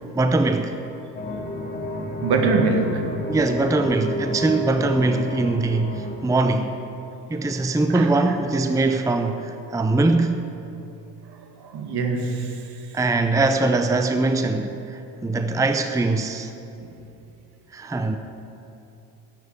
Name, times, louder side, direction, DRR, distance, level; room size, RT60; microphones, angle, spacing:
voice 1, 0.1-0.8 3.3-6.8 7.3-10.5 12.9-16.5 17.7-18.2, right 2 dB, 5° right, 7 dB, 0.7 m, -22 dB
sound 1, 1.1-6.2, equal, 20° left, 2.0 m, -30 dB
voice 2, 2.2-3.1 7.9-8.4 11.6-12.6 16.8-16.9, right 4 dB, 55° right, 5 dB, 1.7 m, -23 dB
10.5 x 7.2 x 9.5 m, 2.8 s
hypercardioid pair, 60°, 45 cm